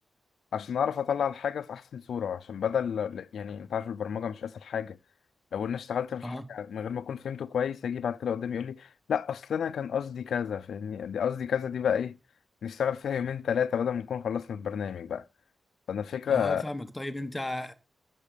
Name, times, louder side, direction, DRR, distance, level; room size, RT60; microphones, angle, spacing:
voice 1, 0.5-5.0 5.5-12.2 12.6-15.2 15.9-16.6, left 8 dB, 90° left, 0.5 m, -31 dB
voice 2, 16.3-17.7, left 1 dB, 10° left, 1.2 m, -35 dB
12.0 x 7.5 x 5.1 m
wide cardioid pair, 175°, 0 cm